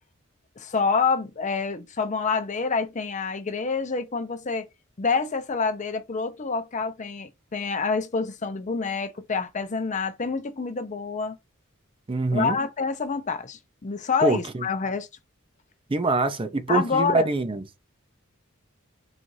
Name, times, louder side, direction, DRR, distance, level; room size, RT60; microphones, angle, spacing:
voice 1, 0.6-4.7 5.0-11.4 12.3-15.1 16.7-17.3, left 4 dB, 35° left, 0.6 m, -27 dB
voice 2, 12.1-12.6 14.2-14.7 15.9-17.8, right 2 dB, 25° right, 0.5 m, -24 dB
4.0 x 2.4 x 4.7 m
head